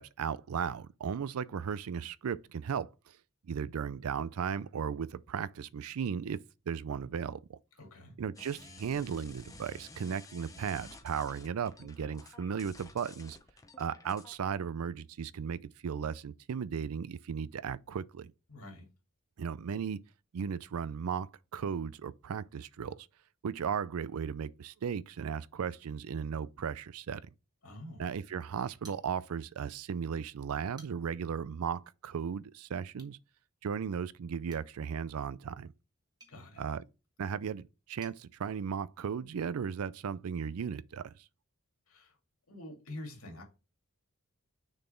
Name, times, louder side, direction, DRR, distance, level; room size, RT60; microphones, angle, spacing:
voice 1, 0.0-2.9 3.5-6.4 6.7-7.6 8.2-13.4 13.8-18.3 19.4-20.0 20.3-23.1 23.4-27.2 28.0-33.2 33.6-35.7 36.6-36.8 37.2-41.1, right 7 dB, 80° right, 0.4 m, -36 dB
voice 2, 7.8-8.2 18.5-18.9 27.6-28.0 36.3-36.6 41.9-42.1 42.5-43.4, left 1 dB, 80° left, 2.3 m, -46 dB
sound 1, 8.4-14.4, left 3 dB, 15° left, 0.7 m, -53 dB
sound 2, 28.8-29.6 29.9-30.0 30.5-31.3 32.9-33.2 34.4-38.2, right 2 dB, 20° right, 1.3 m, -60 dB
6.5 x 4.3 x 4.4 m
head